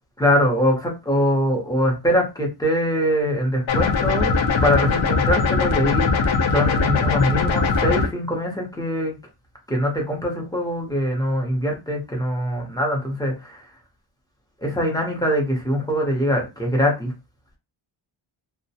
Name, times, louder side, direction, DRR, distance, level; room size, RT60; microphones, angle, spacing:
voice 1, 0.2-4.3 4.6-9.1 9.7-13.6 14.6-17.1, equal, 10° left, 0 dB, 0.6 m, -23 dB
sound 1, 3.7-8.1, left 4 dB, 65° left, 0.7 m, -20 dB
2.3 x 2.1 x 2.7 m, 0.26 s
wide cardioid pair, 155°, 50 cm